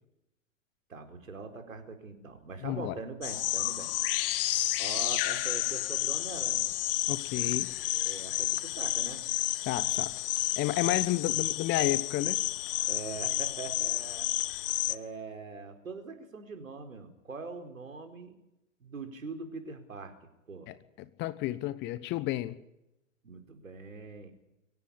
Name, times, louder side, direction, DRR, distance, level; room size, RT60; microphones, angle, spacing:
voice 1, 0.9-3.9 4.8-6.7 7.9-9.2 12.9-18.3 18.8-20.2 20.5-20.7 23.2-24.3, right 4 dB, 75° right, 4.5 m, -42 dB
voice 2, 2.6-2.9 7.1-7.7 9.6-10.1 10.5-12.4 20.7-22.6, left 16 dB, 25° left, 1.2 m, -31 dB
sound 1, 3.2-15.0, left 16 dB, 45° left, 1.0 m, -31 dB
23.5 x 17.0 x 8.5 m
figure-of-eight pair, 110°, 40 cm